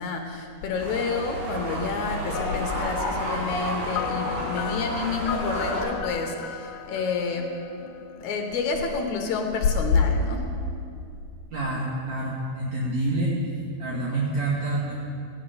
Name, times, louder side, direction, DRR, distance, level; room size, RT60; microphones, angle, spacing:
voice 1, 0.0-7.5 8.1-10.4, left 4 dB, 70° left, 3 dB, 2.2 m, -28 dB
sound 1, 0.8-5.8, right 1 dB, 80° right, 5.3 m, -31 dB
sound 2, 2.3-8.1, left 8 dB, 90° left, 2.3 m, -35 dB
sound 3, 7.3-9.8, left 5 dB, ahead, 3.3 m, -50 dB
voice 2, 11.5-13.3 13.8-14.9, right 2 dB, 65° right, -4 dB, 2.5 m, -27 dB
15.5 x 9.7 x 5.6 m, 2.5 s
omnidirectional pair, 3.7 m